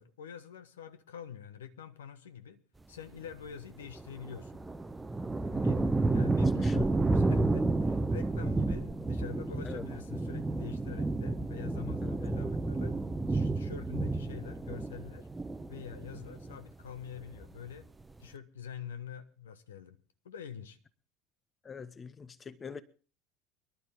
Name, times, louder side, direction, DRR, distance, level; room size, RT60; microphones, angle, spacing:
voice 1, 0.0-2.6 2.9-4.6 5.5-5.8 6.1-12.9 13.3-15.3 15.7-17.9 18.2-20.0 20.2-20.8, left 8 dB, 70° left, 1.0 m, -45 dB
sound 1, 3.9-16.7 17.0-17.7, right 2 dB, 10° right, 0.8 m, -31 dB
voice 2, 5.5-5.8 6.6-6.8 9.6-9.8 12.0-12.1 21.6-22.8, left 5 dB, 25° left, 0.8 m, -44 dB
23.5 x 12.0 x 3.5 m
figure-of-eight pair, 70°, 0 cm